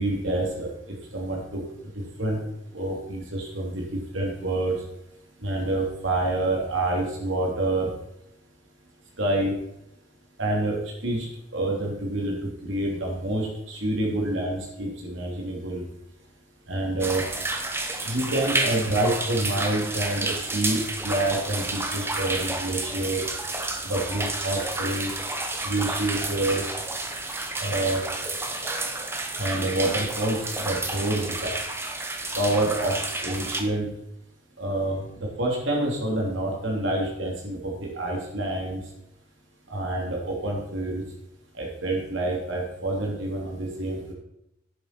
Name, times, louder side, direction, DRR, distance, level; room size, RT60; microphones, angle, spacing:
voice 1, 0.0-4.9 5.4-7.9 9.2-9.6 10.4-15.9 16.7-17.3 18.0-23.3 23.8-25.2 25.6-26.7 27.6-28.1 29.4-31.5 32.3-33.9 34.6-38.9 39.7-41.0 41.5-44.1, right 1 dB, 80° right, -1 dB, 3.1 m, -27 dB
sound 1, 17.0-33.6, right 2 dB, 10° right, 1.0 m, -30 dB
11.0 x 9.8 x 4.5 m, 0.83 s
head